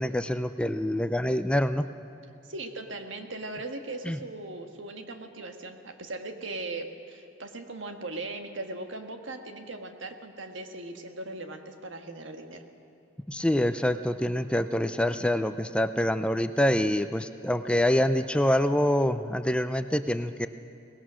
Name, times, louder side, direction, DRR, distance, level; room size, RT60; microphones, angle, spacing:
voice 1, 0.0-1.9 4.0-4.2 13.3-20.5, left 1 dB, 5° left, 10 dB, 0.4 m, -26 dB
voice 2, 2.4-12.6, right 2 dB, 70° right, 5 dB, 1.6 m, -39 dB
22.5 x 19.0 x 6.3 m, 2.7 s
head